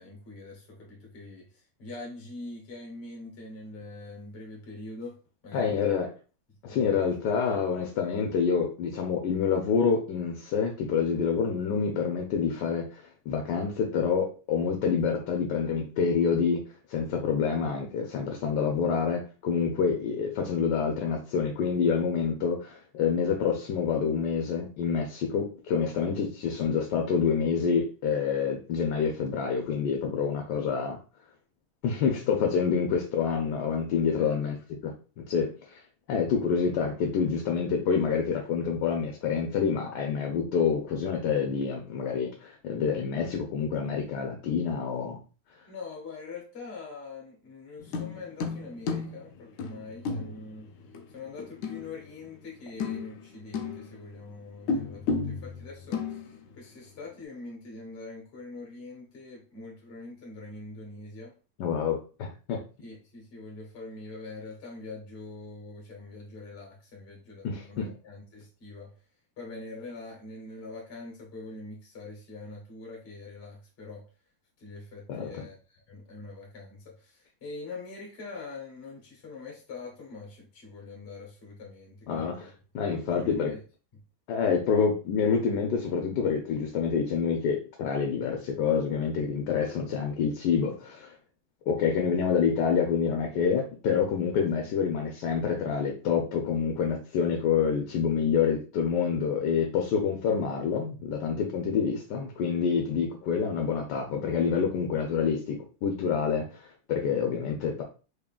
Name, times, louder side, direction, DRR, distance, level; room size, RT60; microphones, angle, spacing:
voice 1, 0.0-5.2 5.4-6.0 6.7-6.9 34.2-34.5 45.7-50.7 51.1-61.3 62.8-68.9 69.4-74.0 74.6-82.5 83.1-83.6, left 3 dB, 40° left, 1.4 m, -43 dB
voice 2, 5.5-6.1 6.6-31.0 31.8-34.5 34.8-35.8 36.1-45.2 61.6-62.6 67.4-67.9 75.1-75.5 82.1-83.5 84.3-91.1 91.7-107.8, left 6 dB, 85° left, 1.3 m, -27 dB
sound 1, 47.8-52.5 52.7-54.1 54.7-56.7 57.1-57.2, left 4 dB, 70° left, 0.8 m, -34 dB
3.7 x 3.6 x 2.3 m
omnidirectional pair, 1.8 m